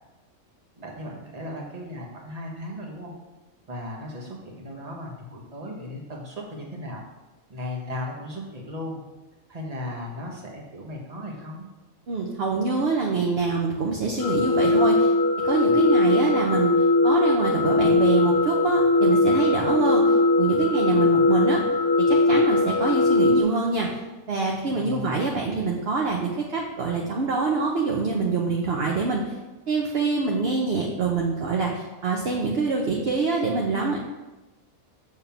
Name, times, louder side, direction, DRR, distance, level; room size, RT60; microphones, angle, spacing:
voice 1, 0.8-3.1 3.7-7.0 7.5-9.0 9.5-11.6 24.7-25.2, left 1 dB, 30° right, -1 dB, 1.3 m, -36 dB
voice 2, 12.1-15.1 15.4-16.7 17.0-21.6 22.0-24.0 24.3-29.3 29.7-34.0, right 4 dB, 50° right, -1 dB, 0.9 m, -25 dB
sound 1, 14.2-23.4, left 2 dB, 75° left, 1.2 m, -20 dB
6.9 x 3.5 x 5.7 m, 1.1 s
omnidirectional pair, 1.5 m